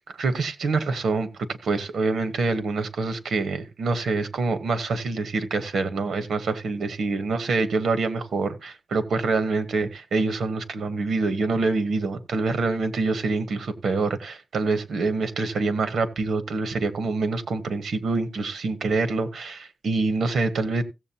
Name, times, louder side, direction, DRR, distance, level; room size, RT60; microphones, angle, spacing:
voice 1, 0.1-1.3 1.6-20.8, right 3 dB, 90° right, 1.1 m, -26 dB
16.5 x 7.5 x 2.8 m
cardioid pair, 80°, 0 cm